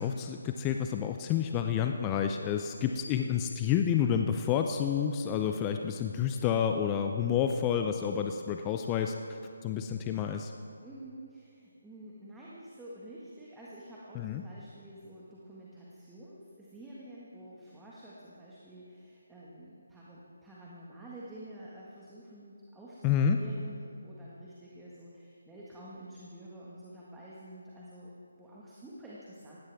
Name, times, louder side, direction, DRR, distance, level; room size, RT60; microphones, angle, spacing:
voice 1, 0.0-10.5 14.1-14.4 23.0-23.4, left 8 dB, 20° left, 5 dB, 0.5 m, -29 dB
voice 2, 10.8-29.6, right 1 dB, 5° right, -7 dB, 1.7 m, -49 dB
18.5 x 16.5 x 3.6 m, 2.5 s
figure-of-eight pair, 155°, 0 cm